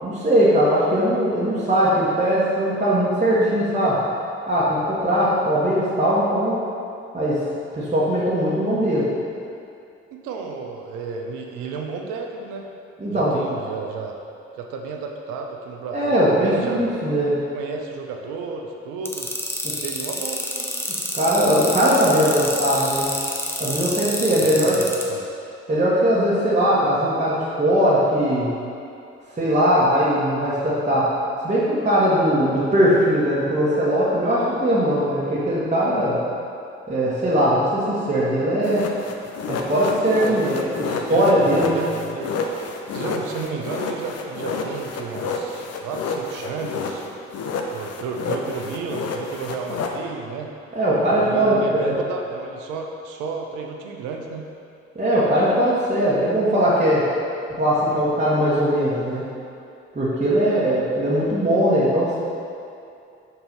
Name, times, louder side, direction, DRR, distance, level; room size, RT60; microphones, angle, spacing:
voice 1, 0.0-4.0 4.5-6.6 7.1-7.4 7.7-9.1 13.0-13.4 15.9-17.4 19.6-19.7 21.1-23.2 23.6-24.7 25.7-28.5 29.4-31.1 31.4-36.2 36.9-38.8 39.5-40.7 41.1-41.8 50.7-52.0 54.9-57.1 57.6-59.3 59.9-62.2, equal, 20° right, -9 dB, 1.3 m, -20 dB
voice 2, 10.1-12.7 13.1-14.1 14.6-16.9 17.5-19.3 19.8-20.8 24.4-25.3 40.3-42.5 42.9-47.0 47.7-50.5 51.1-54.4, right 5 dB, 65° right, 2 dB, 0.7 m, -32 dB
sound 1, 19.1-25.0, left 1 dB, 5° left, 0.9 m, -27 dB
sound 2, 38.6-47.1 47.3-49.9, left 4 dB, 50° left, 0.7 m, -29 dB
5.4 x 4.4 x 4.1 m, 2.6 s
figure-of-eight pair, 40°, 33 cm